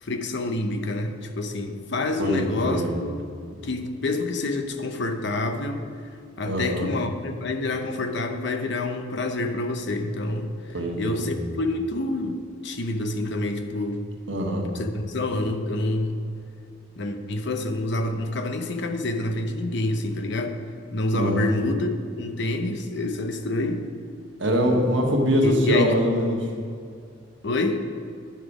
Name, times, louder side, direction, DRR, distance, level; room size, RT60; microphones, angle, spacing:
voice 1, 0.0-5.9 6.4-14.0 14.7-16.2 17.0-20.6 20.9-23.9 25.4-25.9 27.4-27.8, left 2 dB, 65° left, 6 dB, 0.8 m, -27 dB
voice 2, 2.2-2.9 6.5-6.9 10.7-11.3 14.3-14.7 21.1-21.6 24.4-26.5, equal, 70° right, 1 dB, 1.4 m, -23 dB
10.0 x 5.7 x 4.9 m, 2.3 s
head